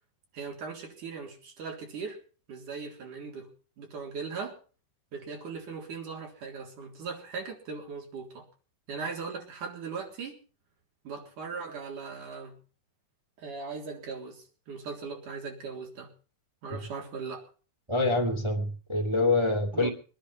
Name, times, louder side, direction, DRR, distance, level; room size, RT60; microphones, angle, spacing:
voice 1, 0.3-2.2 2.5-3.5 3.8-4.6 5.1-8.5 8.9-10.4 11.0-12.6 13.4-16.1 16.6-17.4 19.7-19.9, right 5 dB, 80° right, 5.1 m, -39 dB
voice 2, 17.9-19.9, left 2 dB, 10° right, 1.7 m, -26 dB
22.5 x 10.5 x 5.7 m
omnidirectional pair, 3.5 m